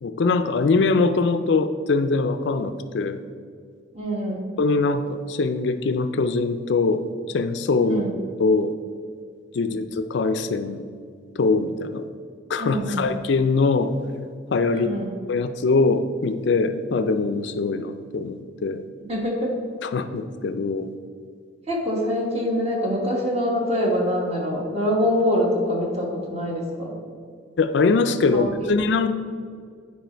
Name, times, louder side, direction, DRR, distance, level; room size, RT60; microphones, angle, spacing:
voice 1, 0.0-3.2 4.6-8.0 8.4-8.7 9.5-10.8 11.4-12.0 12.5-13.9 14.5-15.0 15.3-18.8 19.8-20.9 27.6-29.1, left 3 dB, 60° left, 10 dB, 0.4 m, -22 dB
voice 2, 3.9-4.5 7.9-8.2 9.6-9.7 12.6-13.1 14.8-15.2 19.1-19.5 21.7-27.0 28.3-28.7, equal, 30° right, -1 dB, 1.5 m, -25 dB
9.2 x 4.9 x 4.4 m, 2.1 s
head